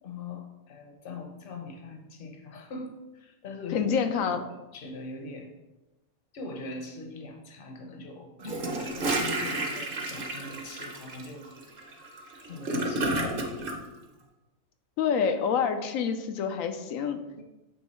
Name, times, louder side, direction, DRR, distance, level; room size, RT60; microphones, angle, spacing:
voice 1, 0.0-5.6 6.3-11.5 12.5-13.6 17.4-17.5, left 3 dB, 45° left, 3 dB, 0.9 m, -41 dB
voice 2, 3.7-4.4 15.0-17.2, left 6 dB, 75° left, 7 dB, 1.0 m, -27 dB
Gurgling / Toilet flush, 8.4-13.8, right 2 dB, 45° right, 0.9 m, -31 dB
7.6 x 3.5 x 4.3 m, 1.0 s
omnidirectional pair, 1.5 m